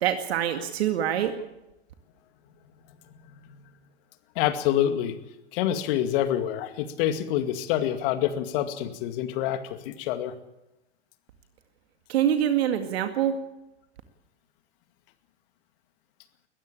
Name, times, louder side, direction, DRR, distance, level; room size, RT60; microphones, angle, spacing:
voice 1, 0.0-1.3 12.1-13.4, right 10 dB, 70° right, 6 dB, 2.2 m, -25 dB
voice 2, 4.4-5.2 5.5-10.3, left 11 dB, 55° left, 8 dB, 2.3 m, -26 dB
21.0 x 15.0 x 8.9 m, 0.94 s
hypercardioid pair, 100°, 32 cm